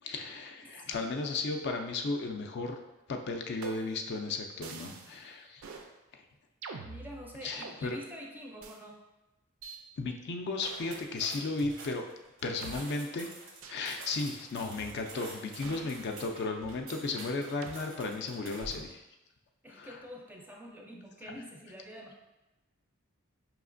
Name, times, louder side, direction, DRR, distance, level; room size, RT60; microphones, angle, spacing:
voice 1, 0.0-2.8 3.1-5.6 6.1-6.2 7.4-8.0 10.0-12.1 12.4-13.3 13.7-19.0 19.7-20.0 21.2-21.3, left 3 dB, 55° left, 4 dB, 0.4 m, -35 dB
sound 1, 3.6-4.1 4.6-5.2 5.6-5.9 6.6-7.8 8.6-8.8 9.6-9.8 10.6-11.0 11.6-11.7 12.6-12.8 13.6-13.9 14.6-15.2 15.6-16.9 17.6-17.8 18.6-19.0, right 4 dB, 70° right, 0.4 m, -46 dB
voice 2, 6.9-9.0 12.4-12.8 19.6-22.2, equal, 10° right, 0 dB, 0.4 m, -47 dB
sound 2, 10.9-18.9, right 3 dB, 90° right, 0.8 m, -49 dB
4.9 x 3.0 x 2.5 m, 1.0 s
head